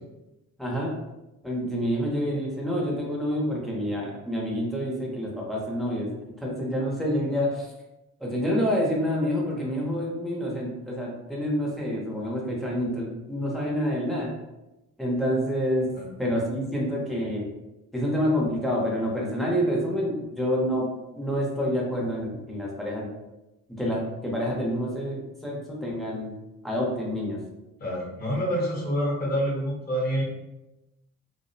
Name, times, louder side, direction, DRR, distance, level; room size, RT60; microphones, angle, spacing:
voice 1, 0.6-0.9 1.4-6.1 6.4-7.7 8.2-14.3 15.0-17.5 17.9-20.9 21.1-23.1 23.8-26.3 26.6-27.4, equal, ahead, -3 dB, 0.7 m, -27 dB
voice 2, 27.8-30.2, equal, 30° left, -3 dB, 0.8 m, -27 dB
2.4 x 2.0 x 2.6 m, 0.96 s
cardioid pair, 90°, 30 cm